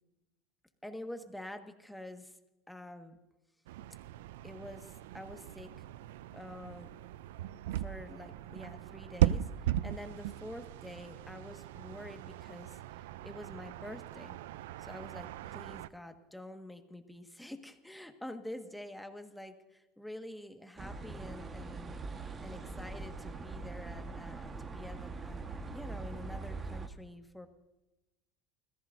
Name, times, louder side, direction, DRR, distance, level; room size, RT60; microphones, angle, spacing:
voice 1, 0.8-2.4 2.7-3.2 4.4-5.7 6.3-7.0 7.8-14.4 14.8-22.0 22.4-27.5, left 1 dB, 5° left, 5 dB, 1.6 m, -47 dB
sound 1, 3.7-15.9, right 12 dB, 85° right, 0.4 m, -38 dB
sound 2, 20.8-26.9, right 3 dB, 25° right, 1.4 m, -42 dB
29.5 x 15.0 x 2.6 m, 1.0 s
supercardioid pair, 105°, 0 cm